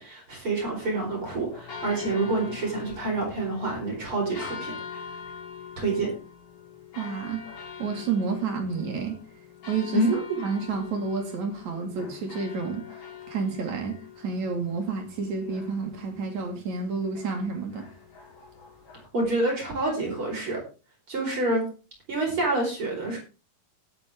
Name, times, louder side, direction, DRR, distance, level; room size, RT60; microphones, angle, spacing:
voice 1, 0.0-4.7 5.8-6.1 9.9-10.4 19.1-20.6 21.1-21.7 22.1-23.2, right 2 dB, 35° right, 5.3 m, -27 dB
sound 1, 0.7-19.1, left 6 dB, 60° left, 6.5 m, -44 dB
voice 2, 7.0-7.4 7.8-9.2 9.7-10.0 10.4-12.9 13.3-17.9, right 5 dB, 55° right, 3.5 m, -30 dB
13.0 x 11.0 x 3.6 m
omnidirectional pair, 4.2 m